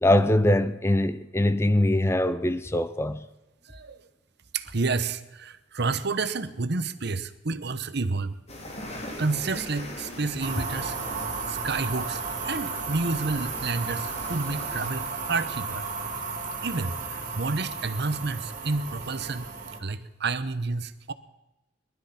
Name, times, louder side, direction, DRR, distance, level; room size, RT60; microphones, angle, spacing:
voice 1, 0.0-3.3, left 1 dB, 15° left, 0.6 m, -22 dB
voice 2, 3.6-4.0 4.5-8.4 9.2-11.0 11.5-15.8 16.6-19.5 19.8-21.1, right 3 dB, 60° right, 1.0 m, -30 dB
sound 1, 8.5-14.9, left 1 dB, 35° left, 3.0 m, -41 dB
sound 2, 10.4-19.8, right 4 dB, 40° right, 2.6 m, -34 dB
19.5 x 12.5 x 5.9 m
head